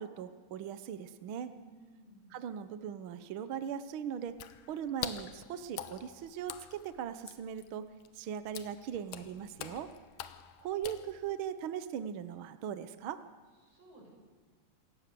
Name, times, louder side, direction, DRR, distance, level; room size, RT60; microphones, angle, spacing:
voice 1, 0.0-1.5 2.3-4.4 4.7-7.8 8.1-9.9 10.6-13.2, right 9 dB, 75° right, 11 dB, 1.2 m, -39 dB
voice 2, 1.4-2.3 8.9-9.7 13.6-14.1, right 1 dB, 50° right, -2 dB, 8.3 m, -59 dB
Water / Splash splatter, 4.3-11.5, left 11 dB, 85° left, 2.4 m, -46 dB
27.5 x 17.5 x 6.9 m, 1.4 s
omnidirectional pair, 3.5 m